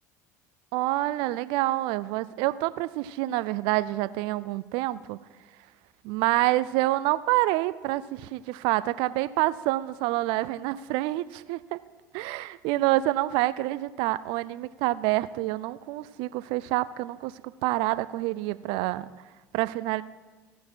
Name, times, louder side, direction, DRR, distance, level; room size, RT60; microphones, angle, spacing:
voice 1, 0.7-5.2 6.0-11.8 12.1-19.1 19.5-20.0, right 17 dB, 65° right, 16 dB, 0.4 m, -27 dB
15.5 x 6.4 x 4.6 m, 1.3 s
hypercardioid pair, 70°, 9 cm